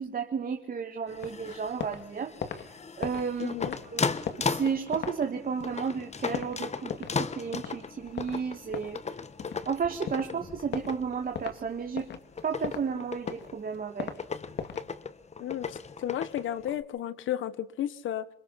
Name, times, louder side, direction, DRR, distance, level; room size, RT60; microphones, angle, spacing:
voice 1, 0.0-2.3 3.0-3.5 3.9-4.1 4.4-9.0 9.7-12.1 12.4-14.1, right 6 dB, 45° right, 5 dB, 2.2 m, -32 dB
sound 1, 1.1-16.8, left 5 dB, 35° left, 1.5 m, -37 dB
sound 2, 1.2-2.1 2.3-7.3 7.5-7.8 8.1-9.7 10.1-10.3 10.7-11.0 11.3-11.6 12.0-12.9 13.2-14.2 14.6-14.9, left 7 dB, 60° left, 2.6 m, -37 dB
voice 2, 3.4-3.8 15.4-18.3, left 11 dB, 75° left, 14 dB, 1.6 m, -33 dB
27.0 x 22.5 x 4.3 m, 0.67 s
cardioid pair, 90°, 20 cm